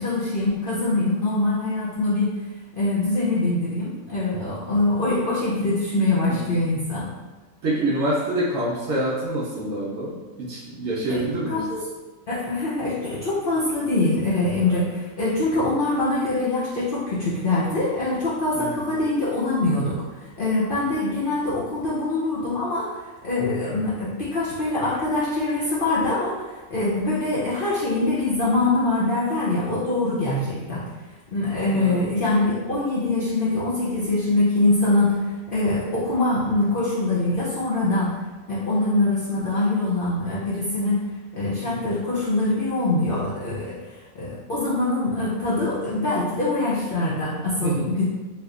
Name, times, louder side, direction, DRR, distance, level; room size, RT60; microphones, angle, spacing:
voice 1, 0.0-2.3 2.7-7.1 11.1-11.8 12.3-23.0 23.2-30.8 31.3-35.2 35.5-38.2 38.5-41.0 41.3-43.8 44.1-48.0, left 2 dB, 55° left, -9 dB, 0.6 m, -23 dB
voice 2, 7.6-11.7 15.5-15.7 18.5-18.8 31.7-32.1 41.6-41.8 47.6-47.9, right 1 dB, 60° right, -5 dB, 0.9 m, -27 dB
3.3 x 2.8 x 2.4 m, 1.3 s
omnidirectional pair, 1.5 m